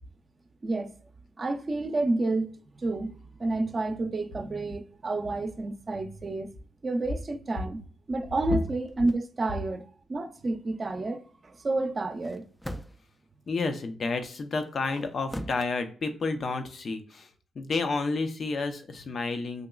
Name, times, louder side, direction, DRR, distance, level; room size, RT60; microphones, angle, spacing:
voice 1, 1.4-3.1 3.4-6.5 6.8-7.8 8.1-9.8 10.1-12.4, right 2 dB, 40° right, 0.6 m, -30 dB
sound 1, 8.8-9.2 12.1-13.2 14.6-15.7, equal, 10° left, 0.4 m, -41 dB
voice 2, 13.5-17.3 17.6-19.7, left 3 dB, 55° left, 0.6 m, -30 dB
5.0 x 2.9 x 2.3 m
supercardioid pair, 50°, 0 cm